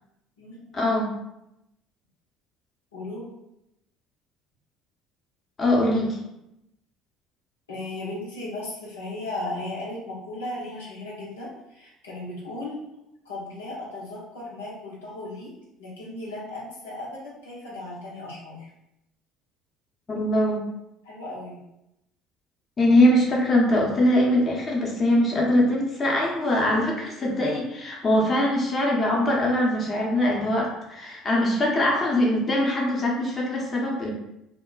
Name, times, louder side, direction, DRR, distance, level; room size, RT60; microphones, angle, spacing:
voice 1, 0.7-1.1 5.6-6.2 20.1-20.6 22.8-34.1, left 1 dB, 35° left, -2 dB, 0.8 m, -22 dB
voice 2, 2.9-3.3 7.7-12.8 13.2-15.5 15.8-18.7 21.0-21.6, left 2 dB, 90° left, -6 dB, 0.8 m, -36 dB
2.2 x 2.1 x 3.8 m, 0.86 s
hypercardioid pair, 65°, 0 cm